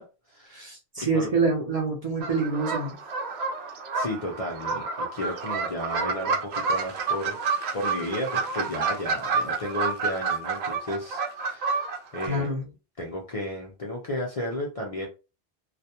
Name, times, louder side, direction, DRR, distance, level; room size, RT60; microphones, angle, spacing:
voice 1, 0.0-0.7 1.1-1.3 3.7-7.4 7.7-11.9 12.1-12.5 13.0-15.1, left 1 dB, 45° left, 0.5 m, -33 dB
voice 2, 0.5-2.9 12.3-12.6, right 3 dB, 40° right, 0.7 m, -26 dB
sound 1, 2.2-12.3, right 4 dB, 80° right, 0.8 m, -29 dB
2.4 x 2.2 x 2.7 m
omnidirectional pair, 1.1 m